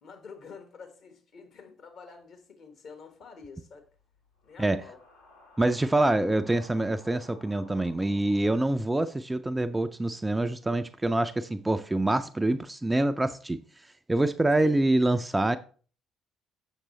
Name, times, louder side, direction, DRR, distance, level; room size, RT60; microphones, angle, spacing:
voice 1, 0.0-3.9 4.4-5.0 14.6-14.9, left 5 dB, 50° left, 1.4 m, -48 dB
sound 1, 3.4-9.5, left 2 dB, 80° left, 2.3 m, -57 dB
voice 2, 5.6-13.6 14.1-15.6, right 2 dB, 15° right, 0.4 m, -25 dB
7.3 x 6.6 x 3.2 m
figure-of-eight pair, 50°, 0 cm